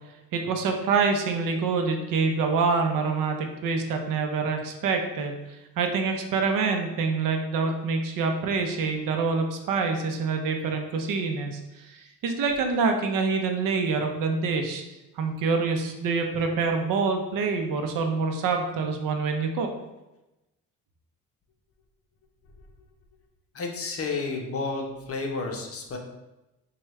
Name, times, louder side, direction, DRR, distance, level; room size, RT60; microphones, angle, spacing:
voice 1, 0.3-14.8 15.2-19.7, right 4 dB, 70° right, 4 dB, 0.6 m, -26 dB
voice 2, 23.5-26.0, left 3 dB, 45° left, 2 dB, 0.8 m, -31 dB
4.6 x 2.3 x 3.1 m, 0.98 s
cardioid pair, 85°, 34 cm